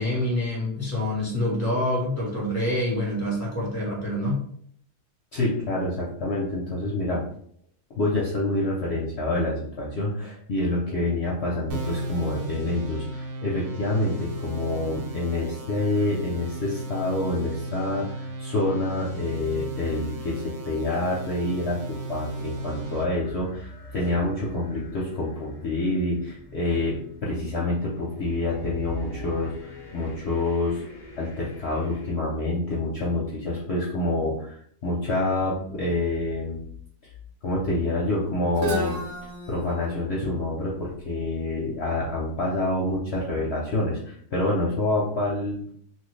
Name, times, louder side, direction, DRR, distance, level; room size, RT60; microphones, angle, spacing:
voice 1, 0.0-4.4, left 1 dB, 10° right, -5 dB, 0.9 m, -26 dB
voice 2, 5.3-7.2 7.9-30.8 31.2-36.6 37.4-39.0 39.5-45.8, left 2 dB, 55° left, -4 dB, 0.8 m, -27 dB
sound 1, 11.7-23.0, right 2 dB, 75° right, 1.1 m, -35 dB
sound 2, 21.9-32.1, equal, 35° left, 0.3 m, -44 dB
Guitar, 38.5-42.3, right 1 dB, 55° right, 1.0 m, -35 dB
3.0 x 2.6 x 3.2 m, 0.62 s
omnidirectional pair, 1.7 m